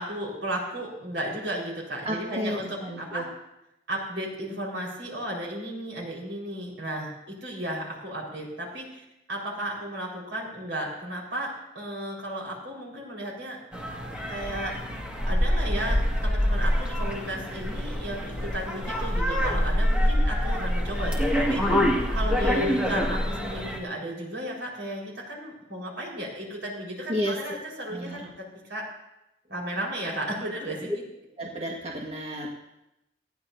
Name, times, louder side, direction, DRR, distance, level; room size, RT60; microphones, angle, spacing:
voice 1, 0.0-3.3 3.9-13.6 14.3-14.7 15.2-21.9 22.1-28.8 29.5-30.9, right 1 dB, 80° right, -2 dB, 4.6 m, -34 dB
voice 2, 2.0-3.2 27.1-27.4 27.9-28.3 31.4-32.5, equal, 35° right, -2 dB, 1.6 m, -32 dB
sound 1, 13.7-23.8, equal, 5° right, 1.8 m, -26 dB
19.0 x 14.5 x 2.7 m, 0.89 s
head